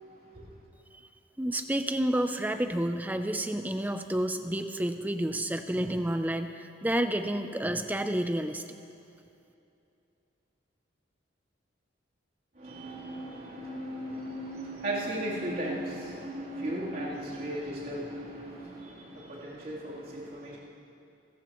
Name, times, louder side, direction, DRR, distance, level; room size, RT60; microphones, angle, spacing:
voice 1, 1.4-8.6, right 1 dB, 10° right, 8 dB, 0.5 m, -30 dB
voice 2, 12.6-20.6, right 1 dB, 50° right, -7 dB, 3.3 m, -36 dB
28.0 x 14.5 x 3.1 m, 2.7 s
head